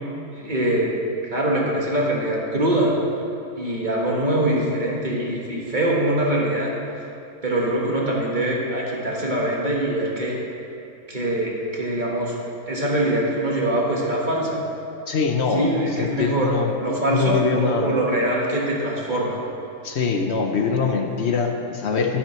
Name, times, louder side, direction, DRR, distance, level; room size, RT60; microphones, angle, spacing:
voice 1, 0.3-1.0 1.2-3.0 3.6-6.7 7.4-10.4 11.1-12.4 12.7-14.6 15.5-16.5 16.8-19.4, right 1 dB, 35° right, -3 dB, 1.4 m, -23 dB
voice 2, 15.1-15.7 16.0-16.7 17.1-18.0 19.8-22.2, left 5 dB, 55° left, 3 dB, 0.9 m, -23 dB
11.5 x 11.0 x 3.1 m, 2.8 s
omnidirectional pair, 1.5 m